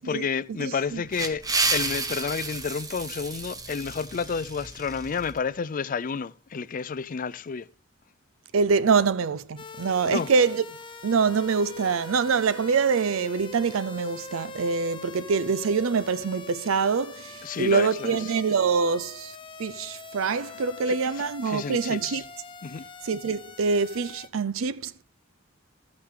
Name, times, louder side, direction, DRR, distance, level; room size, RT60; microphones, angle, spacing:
voice 1, 0.0-1.4 1.7-7.7 10.0-10.3 17.4-18.1 20.9-21.0 21.4-22.2 22.6-22.8, left 5 dB, 40° left, 0.4 m, -30 dB
voice 2, 0.6-1.0 8.5-10.6 11.0-19.3 19.6-22.2 23.0-25.0, right 5 dB, 85° right, 0.5 m, -25 dB
sound 1, 0.8-5.3, right 3 dB, 20° right, 1.1 m, -31 dB
sound 2, 9.6-24.3, left 4 dB, 25° left, 0.8 m, -43 dB
13.5 x 8.8 x 3.7 m
head